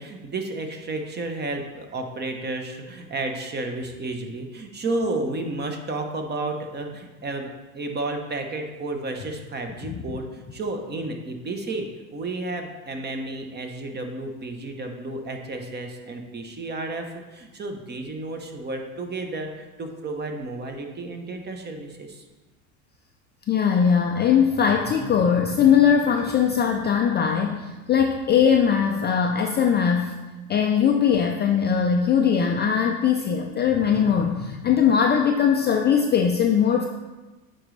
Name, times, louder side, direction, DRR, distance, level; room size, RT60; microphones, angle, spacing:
voice 1, 0.0-22.2 26.2-26.3, right 2 dB, 25° right, 4 dB, 0.8 m, -32 dB
voice 2, 23.5-30.1 30.5-36.9, left 7 dB, 25° left, 2 dB, 0.4 m, -20 dB
8.7 x 3.9 x 3.2 m, 1.2 s
supercardioid pair, 100°, 42 cm